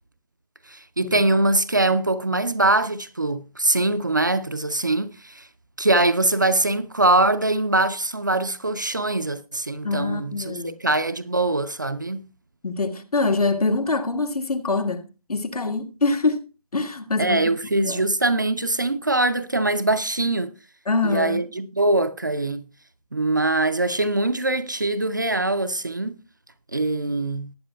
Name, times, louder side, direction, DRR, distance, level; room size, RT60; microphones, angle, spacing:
voice 1, 0.7-5.5 5.8-12.2 17.2-20.5 21.0-22.7 23.1-26.2 26.7-27.5, right 2 dB, 30° right, 0.4 m, -23 dB
voice 2, 9.8-10.8 12.6-16.4 16.7-17.4 17.7-18.0 20.9-21.4, left 3 dB, 70° left, 1.6 m, -24 dB
19.0 x 9.1 x 2.2 m
figure-of-eight pair, 165°, 20 cm